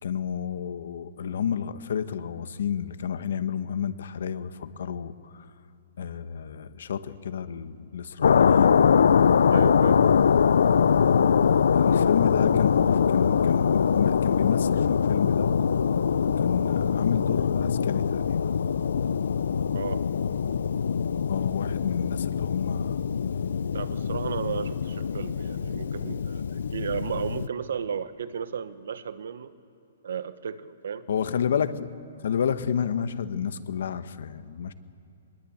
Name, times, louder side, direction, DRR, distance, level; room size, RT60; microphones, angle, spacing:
voice 1, 0.0-5.5 6.0-8.8 11.7-15.5 16.2-18.6 21.3-23.0 31.1-31.9 32.2-34.7, left 7 dB, 60° left, 11 dB, 1.2 m, -30 dB
sound 1, 8.2-27.5, left 7 dB, 75° left, 0.6 m, -23 dB
voice 2, 9.5-10.0 19.7-20.0 23.7-26.4 26.7-29.5 30.0-31.1, right 7 dB, 70° right, 13 dB, 1.2 m, -34 dB
23.0 x 21.0 x 8.7 m, 2.6 s
hypercardioid pair, 175°, 0 cm